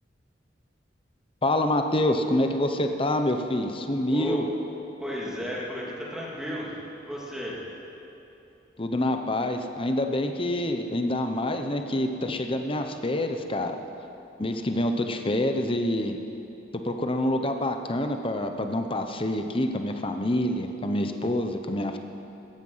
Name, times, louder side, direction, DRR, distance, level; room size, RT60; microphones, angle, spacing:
voice 1, 1.4-4.5 8.8-13.8 14.4-16.2 16.7-22.0, left 1 dB, 30° left, 6 dB, 0.9 m, -26 dB
voice 2, 4.1-4.4 5.0-6.8 7.1-7.6, equal, 5° right, -5 dB, 2.9 m, -33 dB
17.5 x 14.0 x 5.7 m, 2.9 s
head